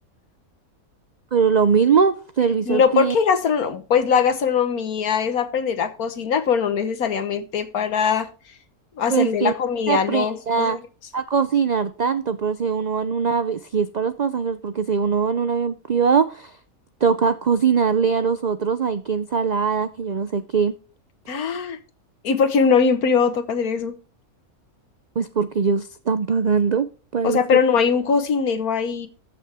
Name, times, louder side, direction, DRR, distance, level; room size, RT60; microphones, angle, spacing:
voice 1, 1.3-3.2 9.1-9.5 9.9-10.8 11.1-16.5 17.0-20.7 25.2-26.9 27.1-27.6, right 6 dB, 80° right, 12 dB, 0.3 m, -21 dB
voice 2, 2.7-8.3 9.0-10.8 21.3-21.8 22.2-24.0 27.2-29.1, left 6 dB, 80° left, 11 dB, 1.7 m, -21 dB
14.0 x 6.1 x 3.5 m, 0.36 s
omnidirectional pair, 1.5 m